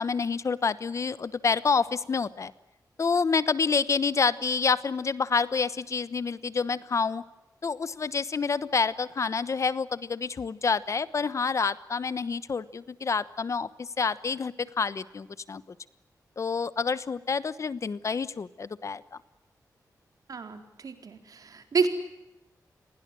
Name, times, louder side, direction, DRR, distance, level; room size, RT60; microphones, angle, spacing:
voice 1, 0.0-2.5 3.0-7.2 7.6-15.6 16.4-19.0, left 5 dB, 50° left, 16 dB, 1.1 m, -28 dB
voice 2, 20.3-21.9, right 5 dB, 60° right, 7 dB, 4.0 m, -29 dB
29.0 x 21.5 x 7.7 m, 0.93 s
wide cardioid pair, 125°, 7 cm